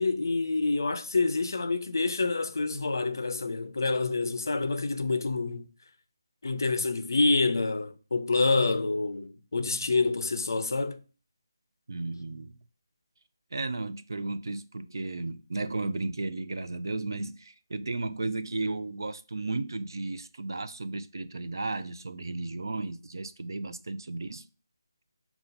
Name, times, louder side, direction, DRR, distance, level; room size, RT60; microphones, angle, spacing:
voice 1, 0.0-5.7 6.4-11.0, left 3 dB, 55° left, 0.5 m, -27 dB
voice 2, 11.9-12.5 13.5-24.4, right 3 dB, 65° right, 0.4 m, -34 dB
5.2 x 2.4 x 3.9 m
figure-of-eight pair, 175°, 2 cm